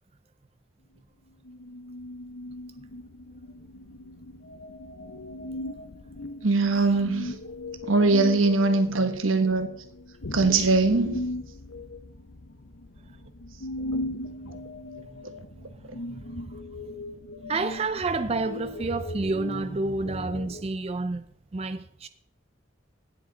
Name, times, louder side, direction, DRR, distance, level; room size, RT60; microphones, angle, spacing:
sound 1, 1.4-20.6, left 1 dB, 85° left, 0.9 m, -38 dB
voice 1, 6.4-7.4 7.8-9.7 10.3-11.2, right 3 dB, 90° right, 1.3 m, -22 dB
voice 2, 17.5-21.2 21.5-22.1, right 3 dB, 30° right, 0.4 m, -29 dB
17.0 x 7.7 x 4.0 m
head